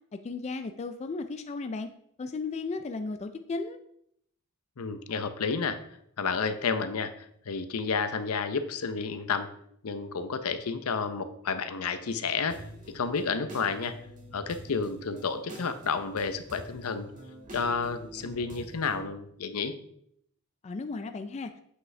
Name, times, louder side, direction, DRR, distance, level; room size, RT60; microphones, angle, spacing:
voice 1, 0.2-1.9 2.2-3.8 20.6-21.5, left 3 dB, 30° left, 8 dB, 0.3 m, -35 dB
voice 2, 4.8-5.8 6.2-9.5 9.8-12.6 12.9-13.9 14.3-17.1 17.5-19.7, left 5 dB, 80° left, 10 dB, 0.6 m, -31 dB
sound 1, 12.5-19.0, equal, 35° right, 1.7 m, -46 dB
7.9 x 5.2 x 3.2 m, 0.70 s
head